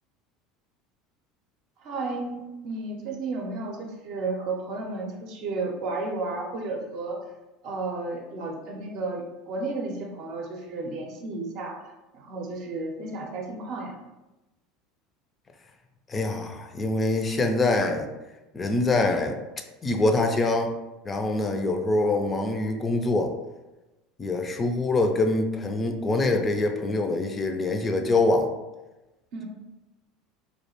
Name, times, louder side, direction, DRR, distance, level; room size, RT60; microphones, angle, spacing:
voice 1, 1.8-7.2 7.6-11.8 12.1-13.9 29.3-29.4, right 3 dB, 60° right, 0 dB, 0.6 m, -33 dB
voice 2, 16.1-18.1 18.5-19.4 19.8-20.7 21.0-23.3 24.2-28.5, left 2 dB, 25° left, 4 dB, 0.3 m, -24 dB
2.3 x 2.1 x 2.9 m, 1.0 s
hypercardioid pair, 75°, 0 cm